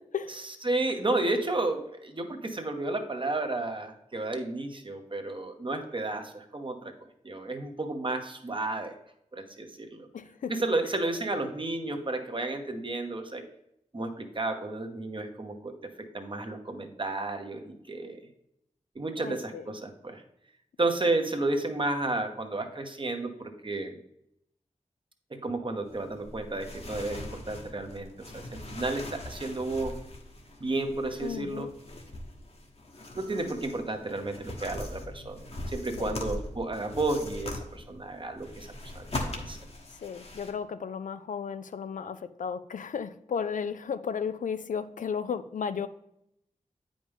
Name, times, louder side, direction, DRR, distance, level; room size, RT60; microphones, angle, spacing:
voice 1, 0.0-0.5 10.1-10.5 19.2-19.7 31.2-31.7 36.0-36.3 40.0-45.9, left 6 dB, 85° left, 12 dB, 0.4 m, -34 dB
voice 2, 0.6-6.9 7.2-8.9 9.3-10.1 10.5-13.4 13.9-15.7 16.0-18.2 18.9-20.2 20.8-24.0 25.3-28.1 28.3-30.0 30.6-31.7 33.1-38.7 38.9-39.6, right 2 dB, 40° right, 5 dB, 1.1 m, -32 dB
sound 1, 25.9-40.5, left 1 dB, 50° left, 1.2 m, -41 dB
8.4 x 5.2 x 3.5 m, 0.78 s
wide cardioid pair, 60°, 13 cm